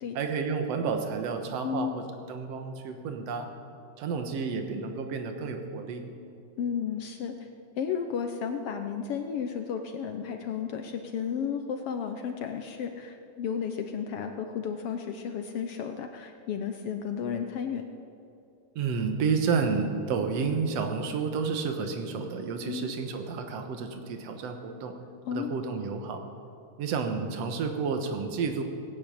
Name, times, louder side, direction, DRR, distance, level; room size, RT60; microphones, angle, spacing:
voice 1, 0.1-3.5 4.0-6.1 18.8-24.9 25.3-26.2 26.8-28.6, right 5 dB, 65° right, 5 dB, 2.3 m, -30 dB
voice 2, 1.6-2.0 6.6-7.3 7.8-17.8 22.6-22.9 25.2-25.5, left 7 dB, 70° left, 6 dB, 1.4 m, -33 dB
19.0 x 8.8 x 8.7 m, 2.6 s
omnidirectional pair, 3.4 m